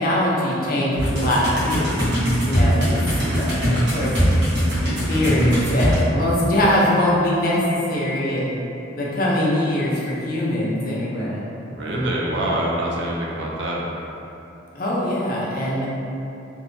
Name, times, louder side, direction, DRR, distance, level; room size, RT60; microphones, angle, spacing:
voice 1, 0.0-2.0 2.4-3.0 3.3-4.4 5.1-8.5 8.9-11.5 14.7-15.9, left 1 dB, 50° left, -6 dB, 0.5 m, -22 dB
sound 1, 1.0-6.0, equal, 85° right, 0.9 m, -21 dB
voice 2, 3.1-3.5 11.6-13.9, right 1 dB, 70° right, -4 dB, 0.4 m, -26 dB
2.6 x 2.1 x 2.6 m, 2.8 s
head